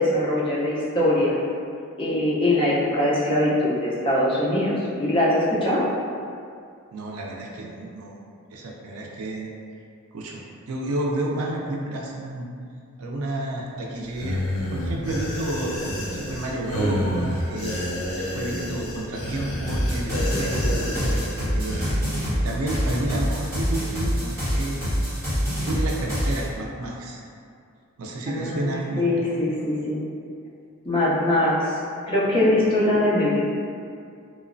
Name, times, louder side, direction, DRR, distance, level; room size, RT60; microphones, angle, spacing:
voice 1, 0.0-1.4 2.0-5.8 28.3-30.0 30.8-31.8 32.1-33.4, left 1 dB, 25° left, -7 dB, 0.4 m, -22 dB
voice 2, 6.9-8.2 8.5-9.5 10.1-12.5 13.0-14.4 14.7-15.7 16.1-17.8 18.1-22.2 22.4-24.8 25.6-27.2 28.0-29.3, right 1 dB, 75° right, -1 dB, 0.4 m, -31 dB
sound 1, 14.1-21.9, equal, 85° left, 0.5 m, -29 dB
sound 2, 19.7-26.4, equal, 15° right, 1.0 m, -26 dB
3.0 x 2.0 x 2.5 m, 2.4 s
head